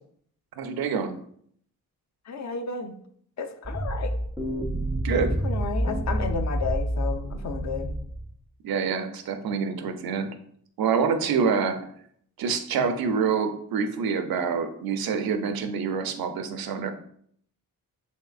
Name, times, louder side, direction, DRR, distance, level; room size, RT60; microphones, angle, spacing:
voice 1, 0.6-1.2 5.0-5.4 8.6-10.3 10.8-11.9 12.4-16.9, right 6 dB, 80° right, 8 dB, 0.5 m, -26 dB
voice 2, 2.3-2.9 3.4-4.1 5.4-8.0 12.8-12.9, left 5 dB, 50° left, 6 dB, 0.5 m, -32 dB
sound 1, 3.6-8.3, right 1 dB, 5° right, 0.4 m, -28 dB
3.6 x 3.1 x 2.4 m, 0.64 s
cardioid pair, 60°, 36 cm